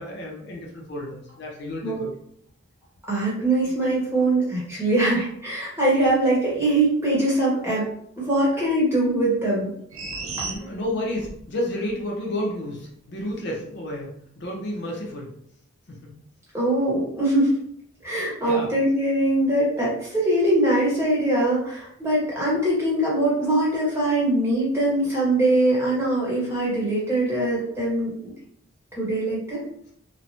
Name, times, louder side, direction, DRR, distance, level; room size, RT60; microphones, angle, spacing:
voice 1, 0.0-2.1 10.4-15.3 15.9-16.2 18.4-18.7, left 1 dB, 55° left, -2 dB, 0.6 m, -31 dB
voice 2, 3.1-7.9 8.2-9.7 10.4-10.5 16.5-17.6 18.0-28.1 28.9-29.6, right 1 dB, 10° right, -7 dB, 1.0 m, -22 dB
sound 1, 9.9-11.4 11.8-11.9, right 3 dB, 80° right, 0.6 m, -33 dB
3.1 x 2.1 x 2.7 m, 0.69 s
head